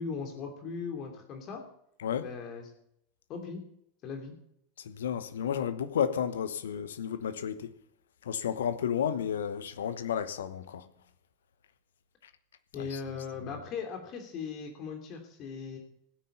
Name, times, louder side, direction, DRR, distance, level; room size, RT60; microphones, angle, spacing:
voice 1, 0.0-1.6 2.2-2.7 3.3-3.6 4.0-4.3 12.7-15.8, left 5 dB, 45° left, 3.0 m, -38 dB
voice 2, 4.8-7.7 8.2-10.9 12.7-13.0, left 8 dB, 70° left, 1.1 m, -32 dB
16.0 x 9.4 x 6.8 m
figure-of-eight pair, 80°, 0 cm